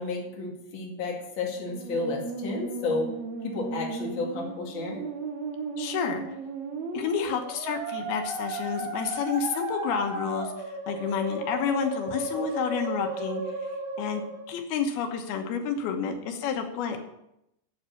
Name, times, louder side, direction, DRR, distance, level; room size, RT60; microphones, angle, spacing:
voice 1, 0.0-3.1 3.4-5.1, left 3 dB, 35° left, -1 dB, 2.4 m, -32 dB
Musical instrument, 1.6-14.6, right 2 dB, 85° right, 3.2 m, -35 dB
voice 2, 5.8-6.2 6.9-13.5 14.0-14.2 14.5-17.0, left 6 dB, 90° left, 4 dB, 3.1 m, -30 dB
8.8 x 8.1 x 7.1 m, 0.82 s
omnidirectional pair, 4.3 m